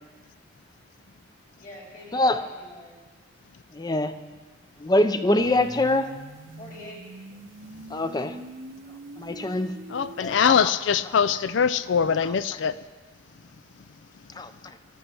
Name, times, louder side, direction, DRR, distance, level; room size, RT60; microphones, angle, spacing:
voice 1, 1.6-3.0 6.6-7.0 10.2-10.3, left 1 dB, 45° left, -4 dB, 4.4 m, -43 dB
voice 2, 2.1-2.4 3.7-4.1 4.8-6.1 7.9-8.4 9.2-9.7 10.4-10.7 14.4-14.5, left 1 dB, 20° left, 10 dB, 0.5 m, -23 dB
sound 1, 5.4-10.4, right 2 dB, 90° right, 0.8 m, -44 dB
voice 3, 9.9-12.8, left 7 dB, 70° left, 15 dB, 0.4 m, -22 dB
18.5 x 13.0 x 4.4 m, 1.4 s
head